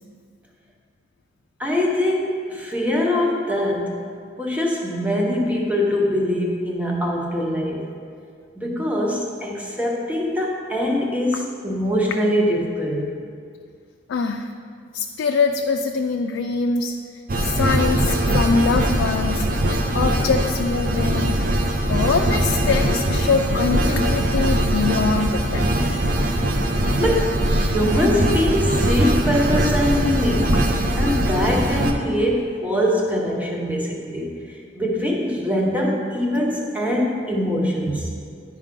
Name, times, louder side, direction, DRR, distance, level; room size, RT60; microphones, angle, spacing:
voice 1, 1.6-4.0 4.4-7.9 8.6-13.1 27.0-30.6 31.0-34.4 34.7-38.1, left 1 dB, 10° right, -2 dB, 0.9 m, -23 dB
voice 2, 14.1-14.5 14.9-16.9 17.3-19.5 19.9-21.4 21.9-25.7, left 4 dB, 90° left, 4 dB, 0.3 m, -23 dB
sound 1, 17.3-31.9, right 1 dB, 45° right, 0.6 m, -21 dB
10.0 x 4.8 x 3.7 m, 2.2 s
head